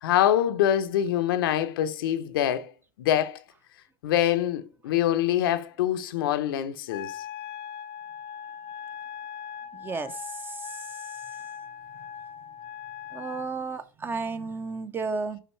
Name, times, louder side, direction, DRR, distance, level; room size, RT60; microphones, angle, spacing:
voice 1, 0.0-2.7 3.0-3.4 4.0-7.2, left 11 dB, 80° left, 0.6 m, -25 dB
Wind instrument woodwind instrument, 6.9-13.5, left 9 dB, 45° left, 0.5 m, -40 dB
voice 2, 9.7-10.2 10.5-10.6 13.1-15.4, right 4 dB, 20° right, 0.6 m, -32 dB
6.5 x 5.2 x 3.1 m
supercardioid pair, 120°, 12 cm